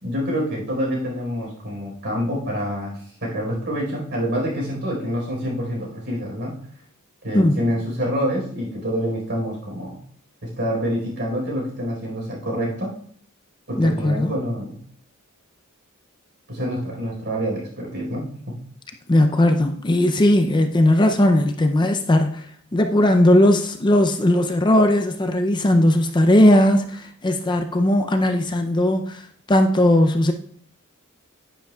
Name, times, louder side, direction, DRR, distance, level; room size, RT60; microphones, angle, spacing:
voice 1, 0.0-6.6 7.2-10.0 10.4-13.0 13.7-14.8 16.5-18.6, equal, 55° right, 4.4 m, -27 dB
voice 2, 13.8-14.3 19.1-30.3, left 1 dB, 20° left, 0.5 m, -18 dB
10.5 x 10.0 x 2.3 m
head